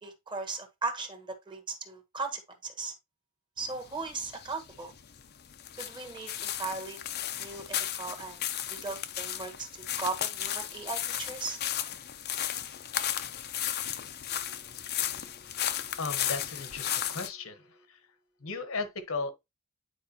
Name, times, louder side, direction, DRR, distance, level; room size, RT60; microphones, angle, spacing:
voice 1, 0.0-2.9 3.6-4.9 5.8-7.0 7.4-8.4 8.7-11.6, right 3 dB, 25° right, 1.4 m, -37 dB
sound 1, 3.6-17.3, left 11 dB, 50° left, 0.6 m, -35 dB
voice 2, 14.3-18.0 18.4-19.3, left 4 dB, 75° left, 1.2 m, -38 dB
9.6 x 4.8 x 2.9 m
head